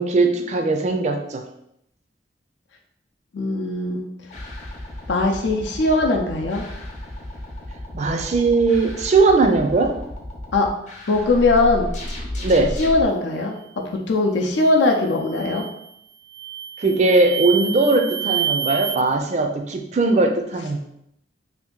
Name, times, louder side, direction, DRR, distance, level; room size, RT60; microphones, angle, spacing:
voice 1, 0.0-1.4 7.9-10.0 12.4-12.8 16.8-20.8, right 3 dB, 40° right, 4 dB, 0.4 m, -19 dB
voice 2, 3.3-4.1 5.1-6.6 10.5-10.7 11.1-11.9 12.8-13.6 13.9-15.7, left 2 dB, 80° left, 1 dB, 0.6 m, -20 dB
sound 1, 4.3-13.0, left 1 dB, 40° left, 0.6 m, -33 dB
sound 2, 14.5-14.8 15.3-15.8 16.3-19.0, right 8 dB, 85° right, 0.7 m, -28 dB
2.8 x 2.5 x 3.6 m, 0.75 s
head